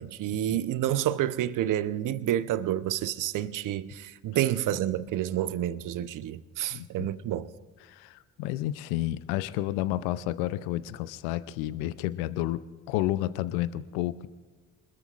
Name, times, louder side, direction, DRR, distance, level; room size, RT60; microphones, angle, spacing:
voice 1, 0.0-7.5, right 12 dB, 60° right, 0.9 m, -29 dB
voice 2, 6.7-7.1 7.8-12.6 12.9-14.3, left 14 dB, 75° left, 0.6 m, -31 dB
26.5 x 21.0 x 2.5 m
hypercardioid pair, 50°, 36 cm